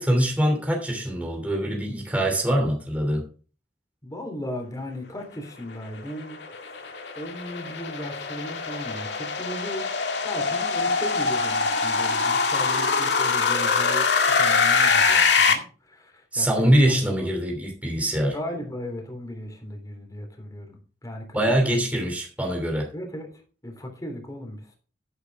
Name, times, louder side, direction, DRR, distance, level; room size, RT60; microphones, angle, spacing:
voice 1, 0.0-3.2 16.3-18.4 21.3-22.9, right 1 dB, 10° right, 2.9 m, -23 dB
voice 2, 4.0-9.9 10.2-17.3 18.3-21.8 22.9-23.3 23.6-24.7, left 1 dB, 20° left, 3.5 m, -37 dB
sound 1, 6.0-15.5, left 4 dB, 65° left, 2.1 m, -23 dB
11.0 x 10.0 x 3.6 m
head